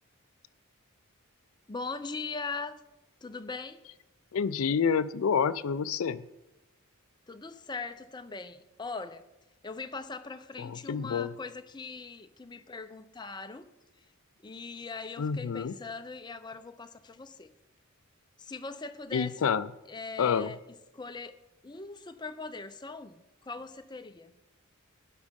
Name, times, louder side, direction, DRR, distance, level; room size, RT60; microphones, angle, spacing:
voice 1, 1.7-2.7 3.2-3.8 7.3-9.2 9.6-13.7 14.4-17.5 18.4-19.4 19.9-20.6 20.9-21.3 21.6-24.3, left 4 dB, 20° left, 9 dB, 0.6 m, -40 dB
voice 2, 4.3-6.2 10.6-11.3 15.2-15.7 19.1-19.7 20.2-20.5, left 6 dB, 70° left, 12 dB, 0.4 m, -28 dB
12.5 x 9.3 x 5.2 m, 0.95 s
head